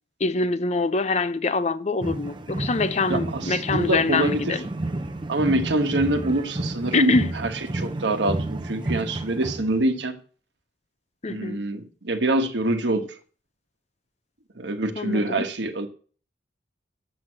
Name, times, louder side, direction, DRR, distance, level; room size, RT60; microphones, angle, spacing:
voice 1, 0.2-4.7 6.9-7.3 11.2-11.6 15.0-15.4, left 3 dB, 40° left, 0.6 m, -24 dB
sound 1, 2.0-10.0, right 2 dB, 25° right, 0.7 m, -31 dB
voice 2, 3.1-4.6 5.3-7.1 7.4-10.1 11.3-13.2 14.6-15.9, right 2 dB, 75° right, 1.2 m, -25 dB
7.6 x 6.2 x 7.6 m
head